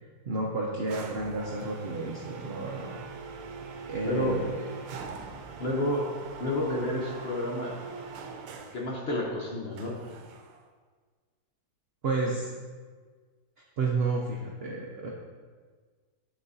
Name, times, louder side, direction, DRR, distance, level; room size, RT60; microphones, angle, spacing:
voice 1, 0.3-3.0 3.9-5.0 12.0-12.5 13.8-15.1, right 3 dB, 65° right, -2 dB, 0.6 m, -31 dB
sound 1, 0.9-8.9 9.8-10.7, right 4 dB, 85° right, 1.2 m, -43 dB
voice 2, 4.0-4.3 5.6-6.0 6.4-7.8 8.7-10.0, left 1 dB, 50° left, -2 dB, 0.8 m, -30 dB
8.9 x 4.1 x 2.7 m, 1.5 s
omnidirectional pair, 1.7 m